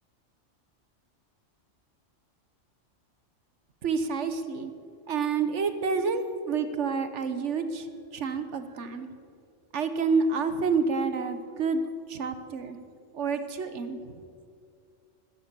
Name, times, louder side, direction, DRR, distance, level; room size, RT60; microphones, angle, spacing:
voice 1, 3.8-4.7 5.1-9.1 9.7-11.8 12.1-12.8 13.1-14.2, right 5 dB, 70° right, 10 dB, 1.3 m, -29 dB
14.0 x 13.5 x 6.9 m, 2.3 s
omnidirectional pair, 1.3 m